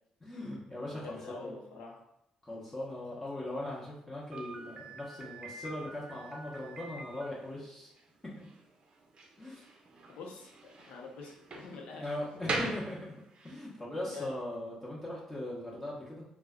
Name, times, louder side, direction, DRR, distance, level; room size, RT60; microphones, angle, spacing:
voice 1, 0.2-1.8 2.4-7.9 9.4-9.7 12.0-13.1 13.4-16.2, left 1 dB, 15° left, -6 dB, 0.8 m, -40 dB
voice 2, 0.8-2.0 10.1-12.1 14.0-14.3, left 4 dB, 85° left, 0 dB, 0.6 m, -46 dB
Slam, 4.3-13.6, right 3 dB, 45° right, 0.5 m, -43 dB
2.2 x 2.1 x 3.5 m, 0.81 s
cardioid pair, 95°, 2 cm